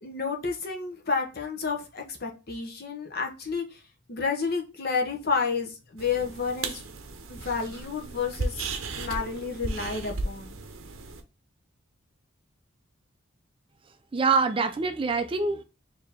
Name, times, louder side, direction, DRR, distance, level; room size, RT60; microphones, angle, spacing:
voice 1, 0.0-3.8 4.1-6.8 7.3-8.7 9.0-10.5, left 5 dB, 45° left, 0.9 m, -30 dB
sound 1, 6.0-11.2, right 3 dB, 70° right, 0.8 m, -35 dB
voice 2, 14.1-15.6, right 4 dB, 25° right, 0.4 m, -25 dB
4.6 x 2.8 x 3.5 m
head